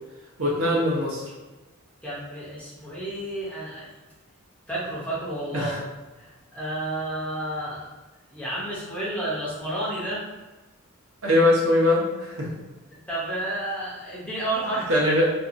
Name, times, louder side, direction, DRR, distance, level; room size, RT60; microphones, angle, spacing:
voice 1, 0.4-1.3 5.5-5.8 11.2-12.5 14.9-15.3, left 1 dB, 70° right, -5 dB, 0.8 m, -21 dB
voice 2, 2.0-3.9 4.7-5.9 6.2-7.9 8.3-10.2 13.1-15.0, right 1 dB, 5° left, -7 dB, 0.6 m, -31 dB
2.7 x 2.3 x 2.5 m, 1.2 s
head